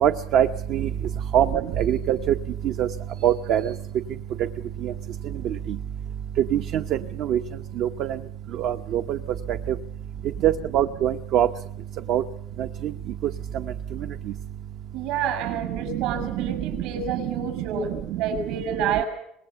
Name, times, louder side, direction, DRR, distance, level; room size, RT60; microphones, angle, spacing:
voice 1, 0.0-0.8 1.3-1.5 1.8-2.2 2.8-2.9 3.2-3.6 6.5-6.6 7.3-7.4 7.8-7.9 8.6-9.0 10.4-11.5 12.1-12.2, right 10 dB, 50° right, 8 dB, 0.9 m, -21 dB
voice 2, 14.9-19.0, right 7 dB, 70° right, 9 dB, 6.2 m, -29 dB
25.5 x 21.0 x 7.0 m, 0.73 s
cardioid pair, 160°, 0 cm